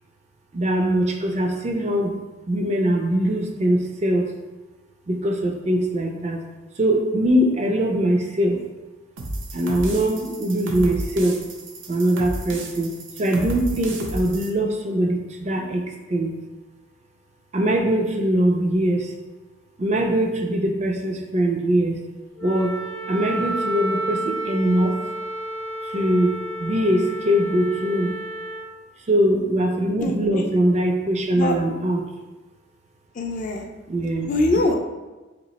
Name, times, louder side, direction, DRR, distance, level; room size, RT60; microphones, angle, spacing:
voice 1, 0.5-2.2 2.5-4.3 5.1-6.4 6.8-8.6 9.5-11.4 11.9-12.9 13.2-15.8 16.1-16.3 17.5-19.1 19.8-22.0 22.4-22.7 23.1-25.0 25.9-26.3 26.6-28.1 29.1-32.1 33.9-34.3, right 1 dB, 35° right, 2 dB, 0.4 m, -22 dB
sound 1, 9.2-14.5, right 1 dB, 75° right, 0.6 m, -33 dB
Wind instrument woodwind instrument, 22.4-28.7, right 2 dB, 70° left, 0.7 m, -31 dB
voice 2, 30.0-30.4 31.4-31.6 33.2-33.7 34.3-34.7, left 2 dB, 40° left, 3 dB, 0.4 m, -23 dB
3.0 x 2.8 x 4.0 m, 1.2 s
head